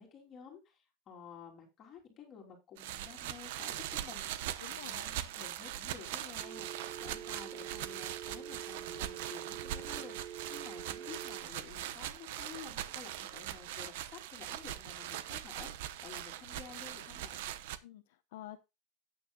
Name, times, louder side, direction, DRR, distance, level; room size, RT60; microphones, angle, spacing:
voice 1, 0.0-4.4 4.7-17.4, left 7 dB, 30° left, 1 dB, 3.2 m, -52 dB
sound 1, 2.8-17.8, right 12 dB, 75° right, 0.9 m, -41 dB
voice 2, 4.6-5.1 17.8-18.6, left 13 dB, 85° left, 4 dB, 0.9 m, -49 dB
Telephone, 6.4-11.4, right 9 dB, 30° right, 3.4 m, -46 dB
13.0 x 9.0 x 2.3 m, 0.25 s
supercardioid pair, 165°, 0 cm